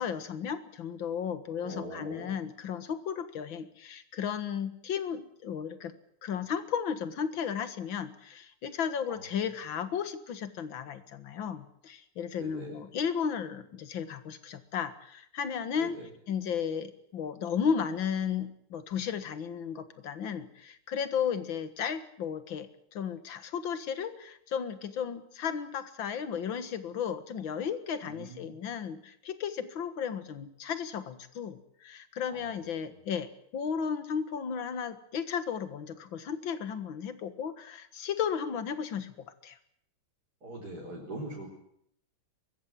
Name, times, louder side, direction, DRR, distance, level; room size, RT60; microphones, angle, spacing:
voice 1, 0.0-5.9 6.2-16.0 16.3-39.1 39.4-39.6, left 7 dB, 65° left, 11 dB, 2.3 m, -34 dB
voice 2, 1.6-2.4 9.1-9.2 12.4-12.8 15.8-16.1 28.0-28.6 32.3-33.0 40.4-41.5, right 1 dB, 45° right, -4 dB, 4.9 m, -43 dB
23.5 x 22.5 x 7.5 m, 0.69 s
omnidirectional pair, 2.3 m